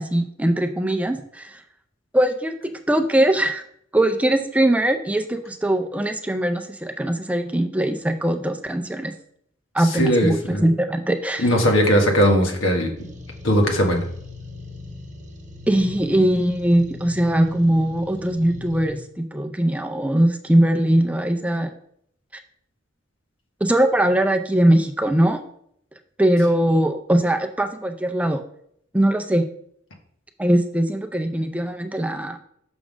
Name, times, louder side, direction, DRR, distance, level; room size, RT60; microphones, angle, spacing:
voice 1, 0.0-1.6 2.1-3.6 3.9-9.1 9.7-11.5 15.7-21.7 23.6-25.4 26.2-28.4 28.9-29.5 30.4-32.4, right 1 dB, 5° right, 6 dB, 0.4 m, -21 dB
voice 2, 9.9-10.6 11.4-12.9 13.4-14.0, equal, 90° left, 2 dB, 1.5 m, -19 dB
sound 1, 13.0-18.9, left 2 dB, 40° right, 1.1 m, -39 dB
6.1 x 3.7 x 6.2 m, 0.69 s
head